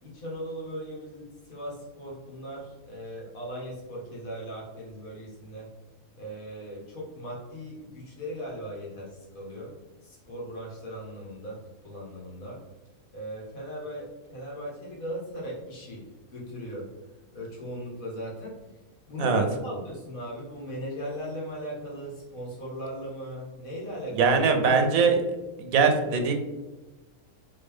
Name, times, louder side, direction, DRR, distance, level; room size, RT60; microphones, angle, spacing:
voice 1, 0.0-5.7 6.2-9.7 10.0-12.6 13.1-16.0 16.3-16.9 17.3-18.6 19.1-24.3, equal, 70° left, -4 dB, 1.9 m, -38 dB
voice 2, 24.2-25.2 25.6-26.3, right 5 dB, 75° right, 5 dB, 1.1 m, -21 dB
3.8 x 3.7 x 3.5 m, 1.1 s
omnidirectional pair, 1.5 m